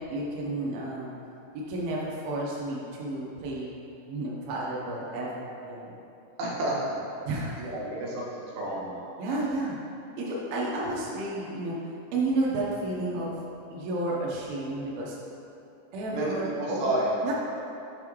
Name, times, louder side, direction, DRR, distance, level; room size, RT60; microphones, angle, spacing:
voice 1, 0.1-1.1 1.5-3.7 4.1-5.9 7.3-7.6 9.2-9.8 10.2-11.8 12.1-13.3 13.7-15.2 15.9-16.9 17.2-17.3, right 2 dB, 90° right, -5 dB, 2.1 m, -31 dB
voice 2, 6.4-7.0 7.6-8.3 8.6-9.0 16.1-17.3, right 1 dB, 70° right, -6 dB, 2.3 m, -30 dB
7.0 x 3.6 x 4.5 m, 3.0 s
omnidirectional pair, 5.3 m